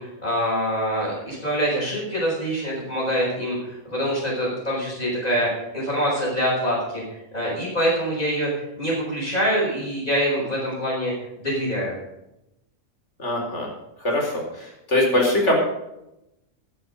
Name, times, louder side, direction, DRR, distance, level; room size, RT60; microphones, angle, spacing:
voice 1, 0.0-7.0 7.3-8.5 8.8-11.1 11.4-11.9, equal, 30° left, -9 dB, 7.0 m, -25 dB
voice 2, 13.2-13.7 14.0-15.6, left 1 dB, 55° left, 0 dB, 4.8 m, -22 dB
14.0 x 12.0 x 5.5 m, 0.87 s
omnidirectional pair, 1.4 m